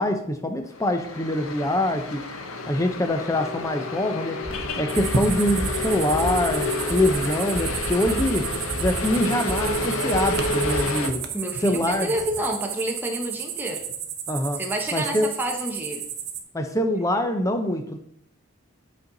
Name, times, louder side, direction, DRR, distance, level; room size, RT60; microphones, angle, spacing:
voice 1, 0.0-2.3 2.7-4.4 4.8-8.5 8.8-11.2 11.6-12.1 14.3-14.6 14.9-15.3 16.5-18.0, left 1 dB, 15° left, 6 dB, 0.6 m, -24 dB
sound 1, 0.8-11.1, left 3 dB, 80° left, 0.7 m, -30 dB
sound 2, 4.4-10.8, right 1 dB, 75° right, 2.2 m, -33 dB
sound 3, 4.9-16.4, right 7 dB, 50° right, 0.7 m, -32 dB
voice 2, 11.3-13.8 14.6-16.0, right 1 dB, 10° right, 1 dB, 1.0 m, -29 dB
8.0 x 4.3 x 4.0 m, 0.70 s
head